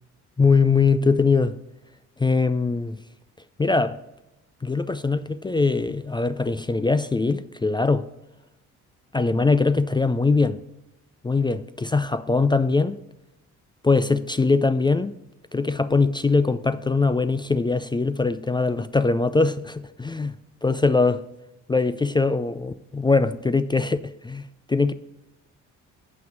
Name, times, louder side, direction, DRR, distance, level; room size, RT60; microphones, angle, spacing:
voice 1, 0.4-1.6 2.2-3.0 3.6-4.0 4.6-8.1 9.1-10.6 11.2-13.0 13.8-15.1 15.5-20.3 20.6-21.2 21.7-24.9, left 4 dB, 15° left, 0.3 m, -22 dB
7.4 x 5.8 x 6.0 m
supercardioid pair, 55°, 33 cm